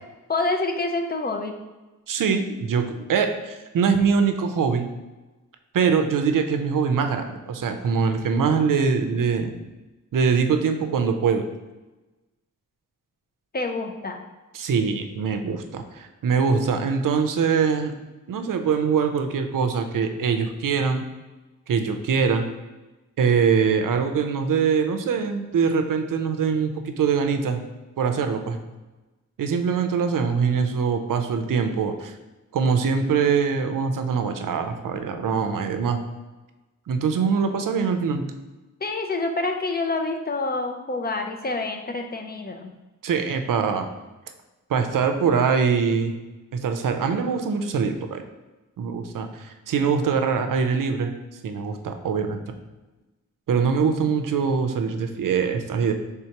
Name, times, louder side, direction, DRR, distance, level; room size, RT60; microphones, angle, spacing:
voice 1, 0.3-1.6 13.5-14.2 38.8-42.7, left 3 dB, 30° left, 4 dB, 0.4 m, -27 dB
voice 2, 2.1-4.9 5.7-9.5 10.1-11.4 14.5-17.9 18.3-21.0 21.7-22.5 23.2-27.6 28.0-28.6 29.4-32.2 32.5-36.0 36.9-38.2 43.0-43.9 44.7-46.1 46.5-48.2 48.8-51.1 51.4-52.4 53.5-55.9, right 6 dB, 85° right, 6 dB, 0.5 m, -23 dB
4.5 x 3.5 x 2.8 m, 1.1 s
wide cardioid pair, 130°, 31 cm